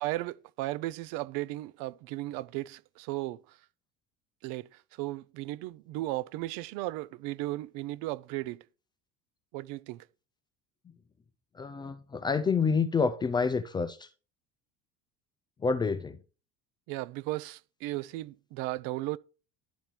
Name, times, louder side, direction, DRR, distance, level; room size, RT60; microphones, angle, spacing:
voice 1, 0.0-3.6 4.4-8.6 9.5-10.0 16.9-19.2, right 18 dB, 70° right, 0.6 m, -35 dB
voice 2, 11.6-14.0 15.6-16.2, left 5 dB, 15° left, 0.4 m, -28 dB
11.5 x 4.5 x 5.1 m
cardioid pair, 170°, 33 cm